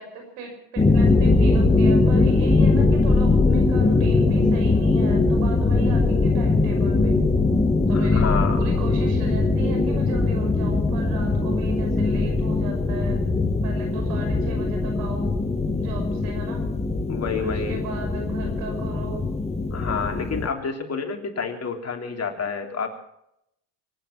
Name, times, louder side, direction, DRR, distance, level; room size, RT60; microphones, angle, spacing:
voice 1, 0.0-7.2 7.9-8.3 8.5-13.2 13.6-15.3 15.8-16.6 17.3-19.3 21.2-21.3, right 4 dB, 90° right, 4 dB, 6.0 m, -37 dB
sound 1, 0.8-20.5, left 3 dB, 15° left, 1.5 m, -21 dB
voice 2, 7.9-8.6 17.1-17.8 19.7-22.9, left 5 dB, 35° left, 4 dB, 3.1 m, -29 dB
24.0 x 9.5 x 5.8 m, 0.80 s
supercardioid pair, 90°, 45 cm